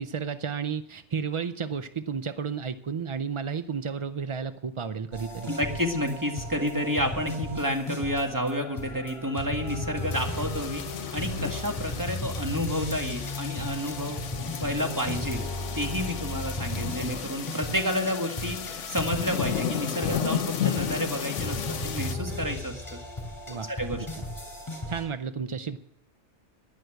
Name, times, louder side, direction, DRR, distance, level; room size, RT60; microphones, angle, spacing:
voice 1, 0.0-5.5 23.5-23.7 24.9-25.8, right 6 dB, 55° right, 11 dB, 0.3 m, -32 dB
sound 1, 5.1-25.1, left 1 dB, 15° left, 3.5 m, -36 dB
voice 2, 5.5-10.8 11.1-14.2 14.6-15.4 15.7-23.0 23.7-24.1, equal, 15° right, 3 dB, 1.9 m, -30 dB
sound 2, 9.6-11.9 12.3-12.4 14.8-16.3 19.8-22.9 23.3-23.4, left 10 dB, 50° left, 1.1 m, -43 dB
sound 3, 10.1-22.1, left 8 dB, 75° left, 1.3 m, -34 dB
11.0 x 10.5 x 8.0 m, 0.73 s
omnidirectional pair, 1.3 m